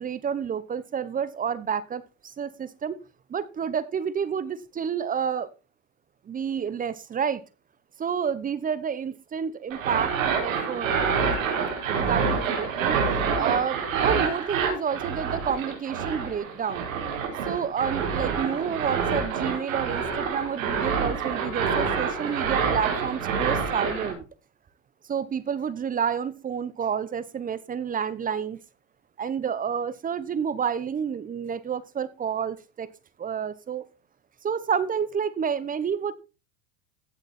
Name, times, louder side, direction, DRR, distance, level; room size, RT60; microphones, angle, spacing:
voice 1, 0.0-2.0 2.4-3.0 3.3-5.5 6.3-7.4 8.0-10.9 11.9-16.8 17.5-24.2 25.1-28.6 29.2-32.9 33.2-33.8 34.4-36.1, right 7 dB, 20° right, 16 dB, 0.9 m, -29 dB
sound 1, 9.7-24.1, right 6 dB, 85° right, 4.9 m, -27 dB
15.5 x 6.4 x 4.3 m, 0.31 s
supercardioid pair, 120°, 39 cm